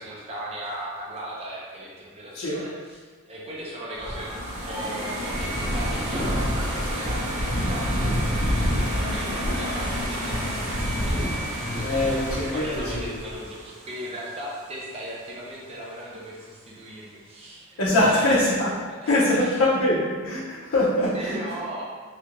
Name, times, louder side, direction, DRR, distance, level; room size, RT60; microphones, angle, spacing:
voice 1, 0.0-3.0 3.3-4.4 4.7-12.2 12.5-18.6 18.9-19.6 21.1-21.8, right 1 dB, 25° right, -5 dB, 0.5 m, -37 dB
sound 1, 3.9-13.3, equal, 10° left, 0.6 m, -29 dB
sound 2, 4.0-15.0, equal, 75° right, 0.7 m, -32 dB
voice 2, 11.8-13.1 17.8-18.7 19.1-21.4, left 1 dB, 75° left, -8 dB, 0.6 m, -23 dB
3.3 x 2.4 x 2.9 m, 1.5 s
head